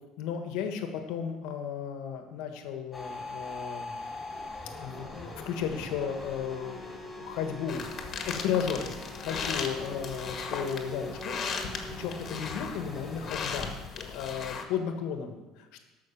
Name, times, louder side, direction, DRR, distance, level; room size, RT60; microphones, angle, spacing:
voice 1, 0.2-3.9 4.8-7.8 8.2-8.9 9.2-11.4 12.0-13.7 14.1-15.8, left 7 dB, 75° left, 6 dB, 1.5 m, -34 dB
sound 1, 2.9-13.6, left 1 dB, 15° left, 2.9 m, -42 dB
sound 2, 7.7-14.6, left 5 dB, 45° left, 1.7 m, -37 dB
13.5 x 6.0 x 5.9 m, 1.1 s
supercardioid pair, 95°, 0 cm